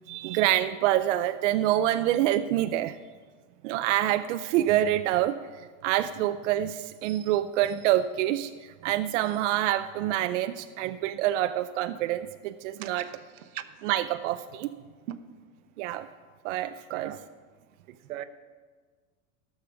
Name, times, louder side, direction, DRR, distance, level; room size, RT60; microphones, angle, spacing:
voice 1, 0.1-3.0 3.6-5.4 5.8-8.5 8.8-13.0 13.9-14.7 15.8-16.1 16.4-17.1, right 13 dB, 65° right, 9 dB, 0.5 m, -26 dB
voice 2, 12.8-13.8 15.1-15.2 16.9-17.3 17.9-18.2, right 12 dB, 90° right, 9 dB, 1.0 m, -40 dB
13.5 x 6.7 x 5.9 m, 1.5 s
supercardioid pair, 165°, 40 cm